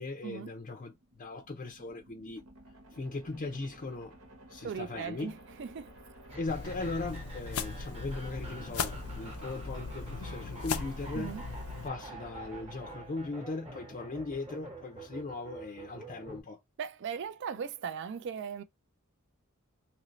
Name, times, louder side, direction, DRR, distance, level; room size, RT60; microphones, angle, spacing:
voice 1, 0.0-2.4 2.9-4.2 4.5-5.3 6.3-11.4 11.8-16.6, left 3 dB, 40° left, 0.5 m, -39 dB
sound 1, 0.9-13.9, right 2 dB, 75° right, 1.1 m, -52 dB
voice 2, 4.6-5.3 5.6-5.9 11.1-11.4 16.8-18.6, right 7 dB, 55° right, 0.4 m, -38 dB
sound 2, 6.3-16.4, right 2 dB, 30° right, 1.0 m, -48 dB
sound 3, 6.5-11.9, left 5 dB, 85° left, 0.5 m, -38 dB
2.9 x 2.6 x 3.0 m
head